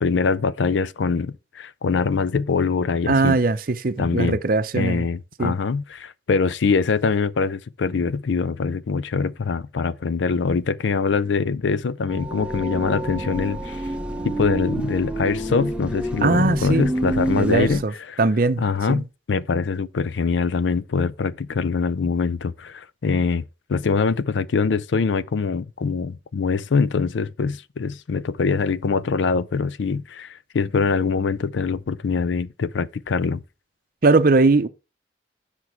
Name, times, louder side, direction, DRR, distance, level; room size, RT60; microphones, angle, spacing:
voice 1, 0.0-3.4 4.0-4.4 4.7-13.8 14.2-18.2 18.6-23.4 23.7-33.4, left 5 dB, 85° left, 0.5 m, -23 dB
voice 2, 3.1-5.1 5.4-5.5 16.2-16.9 17.4-17.9 18.2-18.6 18.9-19.0 34.0-34.7, right 3 dB, 50° right, 0.6 m, -20 dB
sound 1, 12.1-17.8, right 1 dB, 5° right, 0.7 m, -28 dB
8.1 x 5.9 x 4.5 m
head